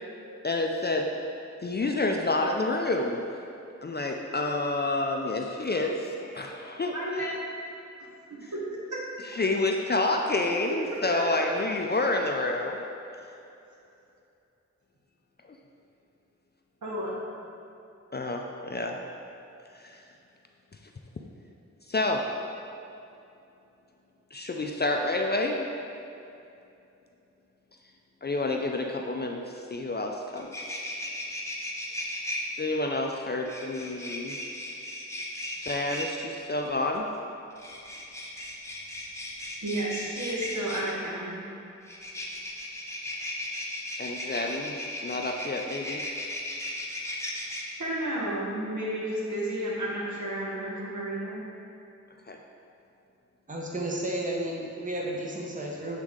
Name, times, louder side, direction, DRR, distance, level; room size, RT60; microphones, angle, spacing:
voice 1, 0.4-1.1 1.6-3.2 3.8-6.9 9.3-12.8 18.1-19.0 19.7-20.0 21.9-22.3 24.3-25.7 28.2-29.4 29.7-30.7 32.6-34.4 35.6-37.1 44.0-46.0 52.3-52.4, left 2 dB, 35° left, 2 dB, 0.4 m, -29 dB
voice 2, 6.9-7.5 8.5-9.0 11.1-11.2 16.8-17.2 39.6-41.4 47.8-51.4, right 1 dB, 85° right, -6 dB, 1.4 m, -32 dB
sound 1, 30.3-32.4 33.5-36.1 37.5-40.9 41.8-47.6, left 1 dB, 10° left, 0.8 m, -36 dB
voice 3, 53.5-56.0, right 1 dB, 25° right, -2 dB, 0.8 m, -32 dB
7.9 x 3.7 x 3.7 m, 2.7 s
wide cardioid pair, 80°, 29 cm